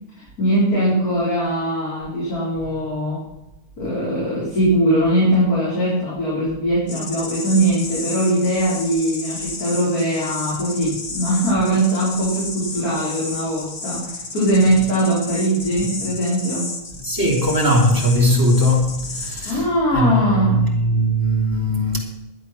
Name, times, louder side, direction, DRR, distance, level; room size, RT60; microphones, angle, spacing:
voice 1, 0.4-3.2 3.8-16.7 19.4-20.7, right 1 dB, 75° left, 4.9 m, -20 dB
sound 1, 6.9-19.5, left 3 dB, 50° left, 1.7 m, -32 dB
voice 2, 17.0-19.6 19.9-22.0, equal, 15° right, 3.2 m, -19 dB
12.0 x 9.8 x 6.2 m
omnidirectional pair, 1.6 m